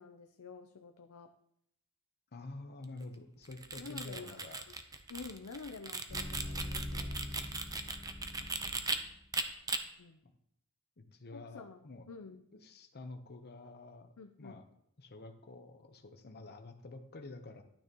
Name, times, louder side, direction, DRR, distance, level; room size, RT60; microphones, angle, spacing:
voice 1, 0.0-1.3 3.8-4.4 5.1-7.4 10.0-10.2 11.3-12.4 14.2-14.6, left 4 dB, 85° left, 6 dB, 0.6 m, -49 dB
voice 2, 2.3-4.6 8.3-8.5 10.2-10.3 11.0-12.1 12.5-14.6 15.0-17.6, left 2 dB, 50° left, 5 dB, 0.9 m, -49 dB
sound 1, 3.5-9.0 9.3-9.8, right 3 dB, 15° right, 0.7 m, -38 dB
sound 2, 6.1-9.2, left 1 dB, 20° left, 0.7 m, -43 dB
12.0 x 9.5 x 3.0 m, 0.74 s
head